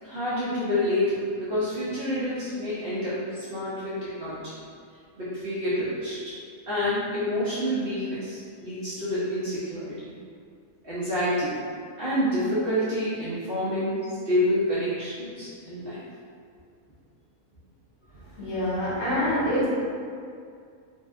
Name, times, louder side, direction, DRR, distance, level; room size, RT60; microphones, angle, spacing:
voice 1, 0.0-4.6 5.2-6.3 6.7-10.1 10.8-11.5 12.0-14.0 14.3-16.0, left 1 dB, 60° right, -12 dB, 0.6 m, -28 dB
voice 2, 18.2-19.7, equal, 70° left, -9 dB, 1.2 m, -26 dB
2.6 x 2.1 x 2.3 m, 2.3 s
omnidirectional pair, 1.4 m